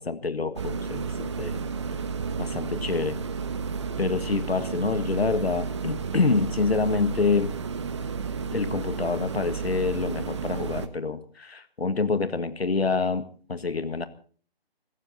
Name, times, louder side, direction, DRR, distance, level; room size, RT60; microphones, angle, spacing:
voice 1, 0.0-1.7 2.4-3.2 4.0-7.5 8.5-13.2 13.5-14.1, left 4 dB, 75° left, 12 dB, 1.7 m, -27 dB
sound 1, 0.6-10.9, right 5 dB, 30° right, 1.1 m, -32 dB
23.0 x 15.5 x 4.1 m, 0.43 s
figure-of-eight pair, 150°, 31 cm